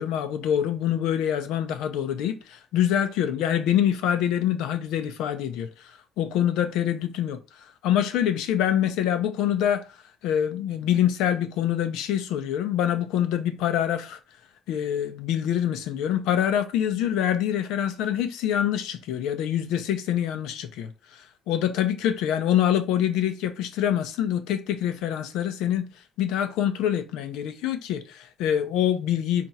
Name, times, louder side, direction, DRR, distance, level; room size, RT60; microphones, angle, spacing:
voice 1, 0.0-7.4 7.8-9.9 10.2-14.2 14.7-25.9 26.2-29.5, left 10 dB, 80° left, 0.7 m, -25 dB
4.4 x 2.5 x 4.1 m
supercardioid pair, 80°, 0 cm